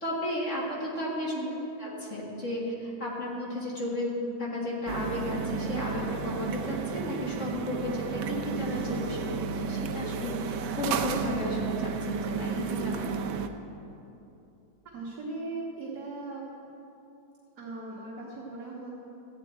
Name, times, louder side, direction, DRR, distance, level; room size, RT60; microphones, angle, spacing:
voice 1, 0.0-1.3 1.8-13.1, left 1 dB, 40° left, -5 dB, 2.2 m, -33 dB
sound 1, 4.9-13.5, right 6 dB, 90° right, 1.4 m, -32 dB
voice 2, 14.9-16.4 17.6-19.0, right 3 dB, 55° right, -6 dB, 2.0 m, -38 dB
14.0 x 9.4 x 4.4 m, 2.8 s
omnidirectional pair, 2.1 m